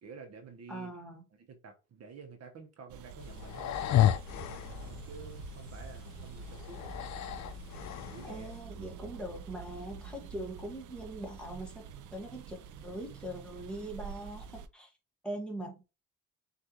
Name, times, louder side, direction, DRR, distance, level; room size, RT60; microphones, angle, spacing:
voice 1, 0.0-0.9 1.5-7.2 8.1-8.5, right 5 dB, 55° right, 1.0 m, -50 dB
voice 2, 0.7-1.2 8.2-11.8 12.1-14.9 15.2-15.8, right 1 dB, 5° left, 1.5 m, -41 dB
sound 1, 2.9-14.7, right 7 dB, 80° right, 0.5 m, -47 dB
sound 2, 3.2-8.6, left 11 dB, 65° left, 0.5 m, -33 dB
6.2 x 2.6 x 2.9 m
cardioid pair, 90°, 30 cm